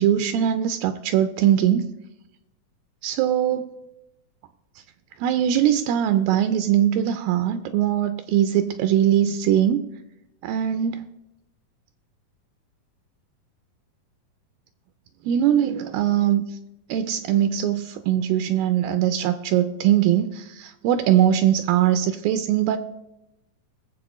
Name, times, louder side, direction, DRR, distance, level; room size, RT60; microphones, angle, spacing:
voice 1, 0.0-1.9 3.0-3.7 5.2-9.9 10.4-11.0 15.3-16.6 16.9-22.8, right 10 dB, 85° right, 9 dB, 2.3 m, -21 dB
21.0 x 7.7 x 3.1 m, 0.89 s
omnidirectional pair, 4.2 m